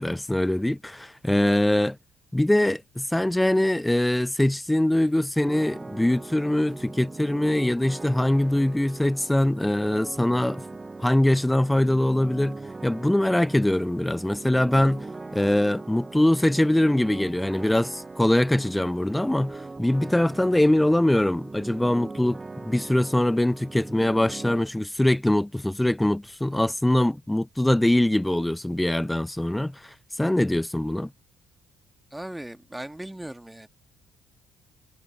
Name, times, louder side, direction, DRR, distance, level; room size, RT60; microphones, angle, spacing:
voice 1, 0.0-2.0 2.3-10.7 11.0-15.1 15.3-31.1, left 1 dB, 10° left, 0.4 m, -23 dB
sound 1, 5.4-24.6, right 3 dB, 25° right, 1.0 m, -40 dB
voice 2, 32.1-33.7, right 1 dB, 10° right, 2.1 m, -38 dB
hypercardioid pair, 50°, 0 cm